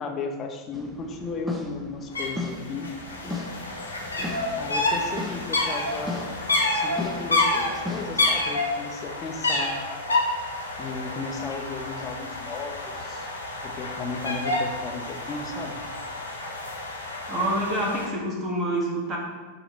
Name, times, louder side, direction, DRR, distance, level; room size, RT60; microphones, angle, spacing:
voice 1, 0.0-2.9 4.6-6.4 6.7-9.7 10.8-13.3 13.6-15.8, left 4 dB, 25° left, 3 dB, 0.7 m, -35 dB
sound 1, 0.7-8.6, left 2 dB, 5° right, 0.7 m, -37 dB
sound 2, 2.1-2.3 2.5-18.1, left 2 dB, 80° left, 1.3 m, -29 dB
voice 2, 17.3-19.2, right 1 dB, 25° right, -2 dB, 1.7 m, -27 dB
7.1 x 3.0 x 5.3 m, 1.3 s
figure-of-eight pair, 90°, 0 cm